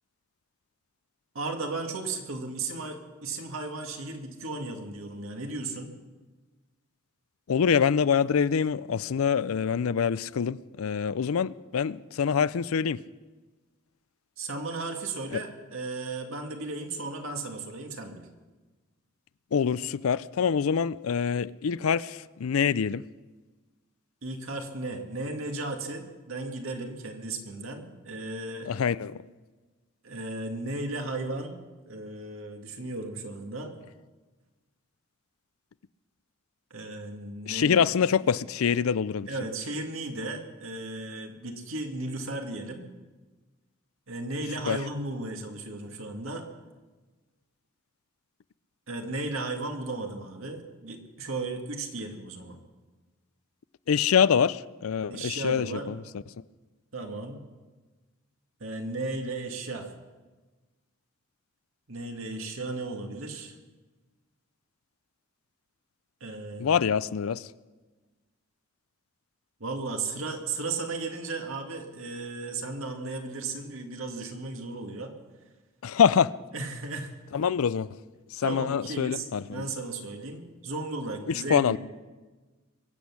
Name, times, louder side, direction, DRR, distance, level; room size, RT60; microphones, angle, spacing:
voice 1, 1.3-5.9 14.4-18.3 24.2-28.7 30.0-31.6 31.9-33.7 36.7-37.8 39.3-42.9 44.1-46.5 48.9-52.6 55.1-56.0 56.9-57.4 58.6-59.9 61.9-63.6 66.2-66.8 69.6-75.1 76.5-77.1 78.4-81.8, right 2 dB, 80° right, 2.0 m, -35 dB
voice 2, 7.5-13.0 15.3-15.4 19.5-23.0 28.7-29.2 37.5-39.3 44.7-44.8 53.9-56.0 66.6-67.5 75.8-76.3 77.3-77.9 78.3-79.7 81.3-81.8, left 7 dB, 90° left, 0.4 m, -25 dB
23.0 x 8.2 x 7.2 m
head